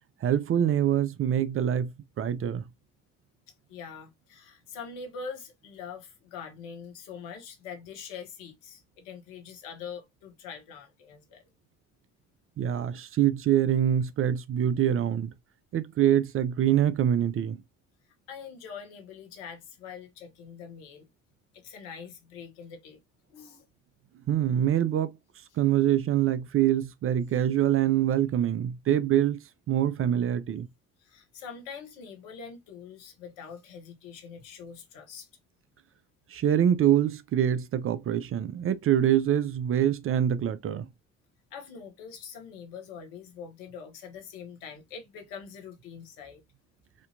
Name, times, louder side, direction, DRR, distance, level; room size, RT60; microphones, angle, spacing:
voice 1, 0.2-2.6 12.6-15.3 15.7-17.6 24.3-25.1 25.6-29.4 29.7-30.7 36.3-40.8, right 10 dB, 35° right, 0.5 m, -25 dB
voice 2, 3.7-11.4 18.3-21.1 21.5-23.0 23.3-23.6 31.0-35.3 41.5-46.4, left 6 dB, 65° left, 1.1 m, -43 dB
4.3 x 2.7 x 2.6 m
figure-of-eight pair, 50°, 36 cm